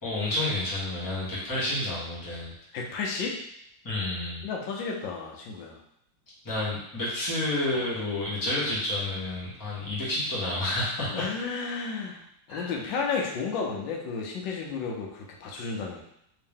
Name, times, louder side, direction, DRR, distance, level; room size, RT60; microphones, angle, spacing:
voice 1, 0.0-2.5 3.8-4.4 6.4-11.3 12.5-12.7, left 1 dB, 15° left, -8 dB, 1.0 m, -30 dB
voice 2, 2.7-3.4 4.4-5.8 7.7-7.8 11.1-12.2 12.5-16.0, left 5 dB, 85° left, 0 dB, 1.4 m, -32 dB
3.6 x 2.8 x 3.5 m, 0.74 s
omnidirectional pair, 2.0 m